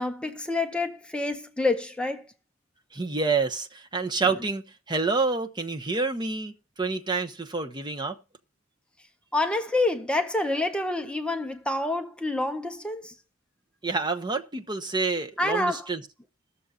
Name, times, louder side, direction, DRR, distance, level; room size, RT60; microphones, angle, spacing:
voice 1, 0.0-2.3 9.3-13.1 15.4-15.9, left 2 dB, 5° left, 0.6 m, -27 dB
voice 2, 2.9-8.2 13.8-16.0, right 4 dB, 20° right, 0.9 m, -28 dB
20.5 x 6.9 x 2.4 m
head